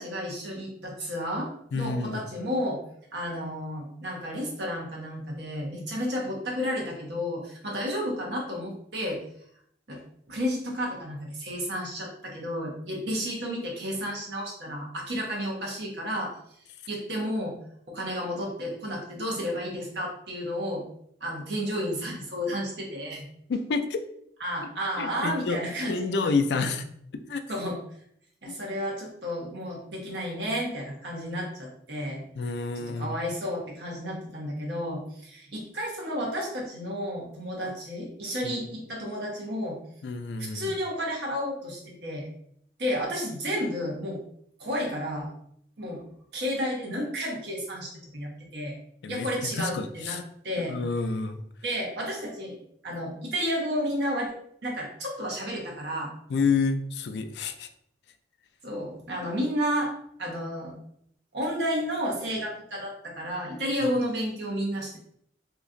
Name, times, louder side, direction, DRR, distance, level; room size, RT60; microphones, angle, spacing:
voice 1, 0.0-2.8 3.1-9.2 9.9-10.0 10.3-16.3 16.9-17.6 17.9-20.8 21.2-23.3 24.4-26.7 27.5-27.8 28.4-32.3 32.7-39.8 40.4-42.3 42.8-44.2 44.6-45.3 45.8-46.0 46.3-48.8 49.1-50.2 50.4-50.8 51.6-52.6 52.8-54.3 54.6-56.1 58.6-59.9 60.2-60.8 61.3-65.0, equal, 75° right, -2 dB, 1.1 m, -32 dB
voice 2, 1.7-2.2 23.5-24.0 25.0-25.6 25.9-26.8 27.1-27.4 28.5-28.6 32.4-33.1 38.4-38.6 40.0-40.7 49.0-49.3 49.6-50.2 50.6-51.4 56.3-57.7 63.8-63.9, left 4 dB, 75° left, 9 dB, 0.4 m, -29 dB
2.9 x 2.5 x 3.7 m, 0.69 s
head